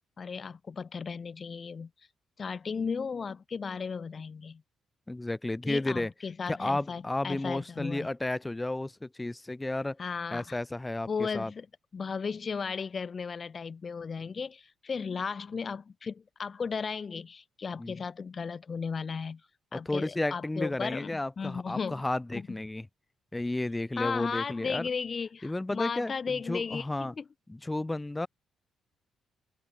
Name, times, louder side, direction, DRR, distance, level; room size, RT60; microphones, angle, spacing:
voice 1, 0.2-1.9 2.4-4.6 5.7-8.1 10.0-10.6 11.1-11.7 11.9-19.4 19.7-22.0 24.0-27.2, left 5 dB, 40° left, 1.0 m, -35 dB
voice 2, 5.1-6.1 6.5-10.0 10.3-11.5 17.8-17.9 19.7-22.9 23.3-24.9 25.4-26.1 26.5-27.1 27.5-28.3, left 2 dB, 15° left, 1.0 m, -32 dB
cardioid pair, 90°, 0 cm